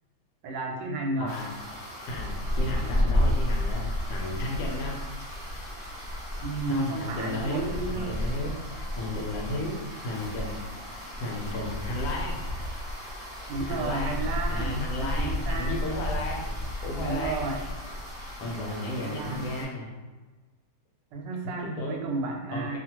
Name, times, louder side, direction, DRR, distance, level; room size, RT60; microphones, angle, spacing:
voice 1, 0.4-1.3 6.4-8.1 13.5-15.7 17.0-17.6 19.0-19.7 21.1-22.8, right 2 dB, 85° right, 1 dB, 1.2 m, -32 dB
voice 2, 1.2-1.5 2.1-5.0 6.7-8.5 9.0-10.6 11.2-12.4 13.6-17.5 18.4-19.9 21.6-22.0 22.5-22.8, left 1 dB, 75° left, -1 dB, 1.2 m, -34 dB
sound 1, 1.3-19.6, left 1 dB, 35° right, 1.3 m, -32 dB
2.8 x 2.4 x 2.9 m, 1.3 s
omnidirectional pair, 1.8 m